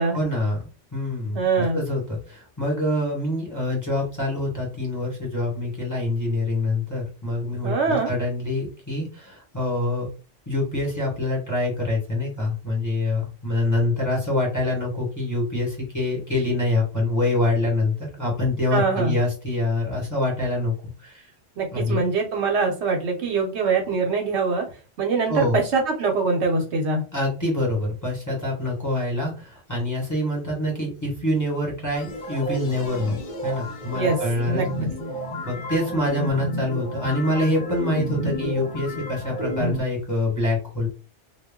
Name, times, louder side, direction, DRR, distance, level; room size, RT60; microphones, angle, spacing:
voice 1, 0.1-10.1 10.5-20.7 21.0-21.3 21.7-22.0 25.3-25.6 27.1-34.9 35.4-40.9, left 2 dB, 15° left, -4 dB, 1.1 m, -25 dB
voice 2, 1.3-1.8 7.6-8.1 18.7-19.2 21.6-24.7 25.0-27.0 33.9-34.2 34.5-34.7, right 4 dB, 70° right, 2 dB, 0.9 m, -23 dB
sound 1, 31.9-39.8, equal, 50° left, 0.8 m, -31 dB
2.2 x 2.2 x 3.5 m, 0.33 s
omnidirectional pair, 1.2 m